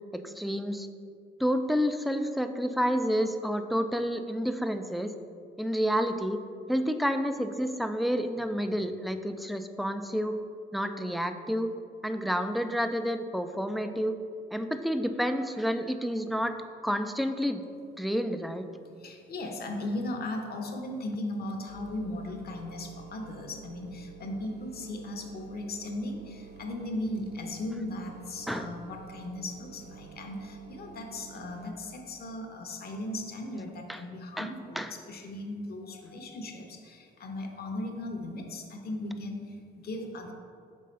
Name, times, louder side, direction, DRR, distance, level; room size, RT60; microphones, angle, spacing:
voice 1, 0.1-0.9 1.4-5.1 5.6-6.4 6.7-10.4 10.7-11.7 12.0-14.2 14.5-16.6 16.8-17.6 18.0-18.6 28.5-28.7 33.9-34.0 34.4-34.5 34.8-34.9, equal, ahead, 8 dB, 0.3 m, -29 dB
voice 2, 19.0-40.3, left 1 dB, 50° left, 3 dB, 0.9 m, -37 dB
sound 1, 21.7-31.7, right 7 dB, 60° right, 0.5 m, -49 dB
5.5 x 3.7 x 5.2 m, 2.3 s
cardioid pair, 90°, 20 cm